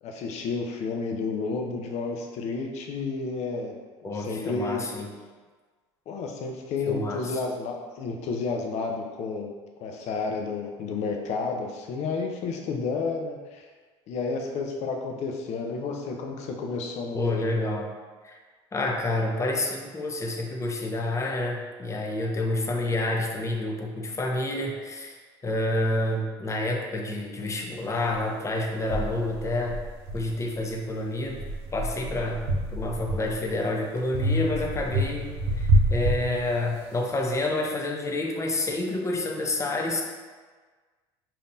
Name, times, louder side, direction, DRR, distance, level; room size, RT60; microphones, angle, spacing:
voice 1, 0.0-3.8 4.0-4.9 6.1-9.5 9.8-13.7 14.1-17.5, left 4 dB, 55° left, 2 dB, 0.7 m, -31 dB
voice 2, 4.0-5.1 6.9-7.4 17.1-17.9 18.2-18.4 18.7-29.8 30.1-31.4 31.7-32.4 32.7-40.0, left 2 dB, 20° left, 1 dB, 0.7 m, -29 dB
sound 1, 28.1-28.2 28.9-30.7 31.2-33.5 34.1-36.9, right 1 dB, 70° right, 0.7 m, -27 dB
5.1 x 2.8 x 2.6 m, 1.4 s
hypercardioid pair, 75°, 13 cm